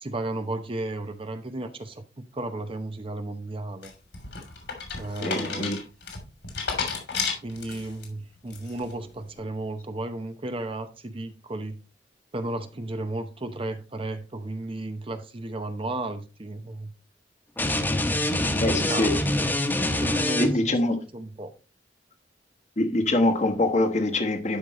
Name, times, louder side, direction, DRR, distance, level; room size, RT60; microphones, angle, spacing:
voice 1, 0.0-3.9 4.9-5.7 7.4-11.8 12.3-16.9 18.5-19.3 20.0-20.8 21.1-21.5, right 2 dB, 30° right, 0.7 m, -34 dB
sound 1, 3.8-8.0 8.5-8.9, left 5 dB, 75° left, 3.0 m, -32 dB
voice 2, 5.2-5.8 18.6-19.1 20.3-21.0 22.8-24.6, left 2 dB, 40° left, 1.2 m, -24 dB
sound 2, 17.6-20.8, left 1 dB, 10° left, 1.1 m, -25 dB
11.5 x 5.3 x 3.1 m
head